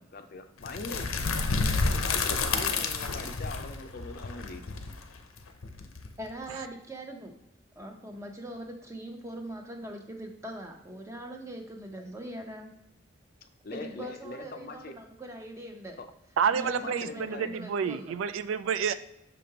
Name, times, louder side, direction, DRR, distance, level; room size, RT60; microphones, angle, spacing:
voice 1, 0.0-1.4 2.0-4.6 13.6-14.9 16.0-16.1 16.6-17.5, left 3 dB, 45° left, 7 dB, 0.5 m, -42 dB
sound 1, 0.6-6.4, left 4 dB, 85° left, 0.7 m, -30 dB
voice 2, 6.2-7.3 7.8-12.7 13.7-16.0 16.5-18.2, right 1 dB, 15° right, 3 dB, 0.7 m, -41 dB
voice 3, 16.4-18.9, right 7 dB, 75° right, 13 dB, 0.3 m, -29 dB
6.4 x 5.1 x 2.8 m, 0.83 s
head